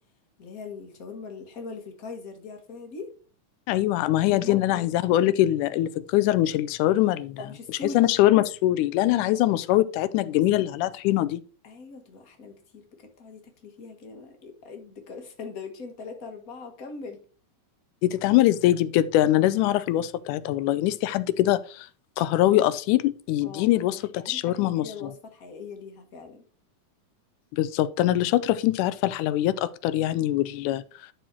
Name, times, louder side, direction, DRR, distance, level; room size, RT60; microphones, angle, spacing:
voice 1, 0.4-3.1 4.2-4.8 7.4-8.1 9.1-9.3 10.2-10.9 11.6-17.2 23.4-23.8 24.2-26.4, left 4 dB, 40° left, 1.2 m, -41 dB
voice 2, 3.7-7.4 7.8-11.4 18.0-21.9 22.2-25.1 27.5-30.8, left 14 dB, 80° left, 2.0 m, -23 dB
11.5 x 4.1 x 4.4 m
omnidirectional pair, 3.6 m